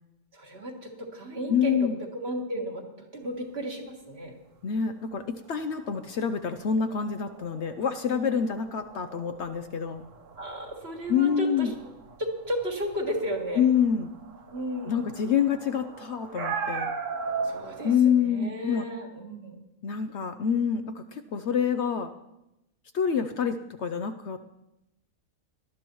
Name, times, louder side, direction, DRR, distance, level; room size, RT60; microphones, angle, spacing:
voice 1, 0.3-4.3 10.4-11.7 12.2-13.7 14.5-15.0 17.4-19.6, equal, 45° right, 1 dB, 1.9 m, -34 dB
voice 2, 1.5-2.0 4.6-10.0 11.1-11.7 13.6-14.1 14.8-16.9 17.8-18.9 19.8-22.1 22.9-24.4, left 7 dB, 65° left, 9 dB, 0.8 m, -26 dB
sound 1, 5.5-18.0, right 5 dB, 65° right, 1.4 m, -39 dB
19.0 x 12.5 x 3.0 m, 0.90 s
omnidirectional pair, 1.4 m